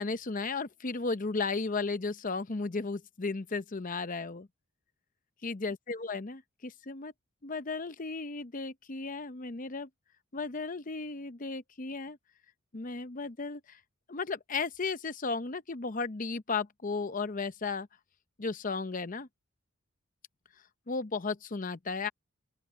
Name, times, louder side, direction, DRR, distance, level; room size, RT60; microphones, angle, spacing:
voice 1, 0.0-4.5 5.4-7.1 7.4-9.9 10.3-12.2 12.7-13.8 14.1-17.9 18.4-19.3 20.9-22.1, left 4 dB, 40° left, 0.7 m, -35 dB
open air
head